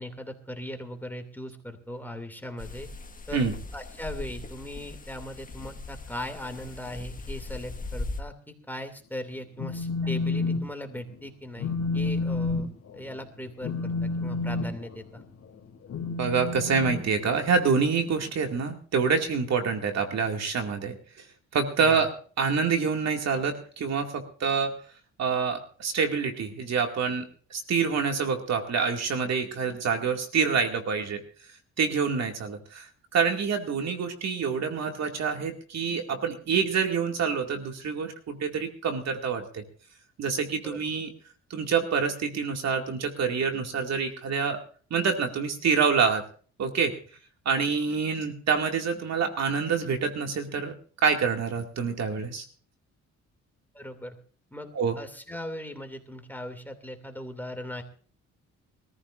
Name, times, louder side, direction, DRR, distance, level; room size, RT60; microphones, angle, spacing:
voice 1, 0.0-2.9 3.3-3.5 3.7-15.2 21.8-22.0 40.6-40.8 53.7-54.2 54.5-54.7 55.0-57.8, left 1 dB, 5° left, 6 dB, 2.6 m, -39 dB
sound 1, 2.6-8.2, left 2 dB, 25° left, 1.5 m, -39 dB
Telephone, 9.4-10.6 10.9-11.2 11.6-17.7, left 3 dB, 60° left, 3.0 m, -30 dB
voice 2, 16.2-21.0 21.5-22.1 22.4-24.7 25.2-27.3 27.5-31.2 31.8-32.9 33.1-39.6 40.2-41.1 41.5-44.6 44.9-46.2 46.6-46.9 47.5-50.7 51.0-52.4 54.7-55.0, right 5 dB, 60° right, 4 dB, 2.3 m, -26 dB
24.0 x 14.5 x 2.6 m, 0.42 s
cardioid pair, 90°, 30 cm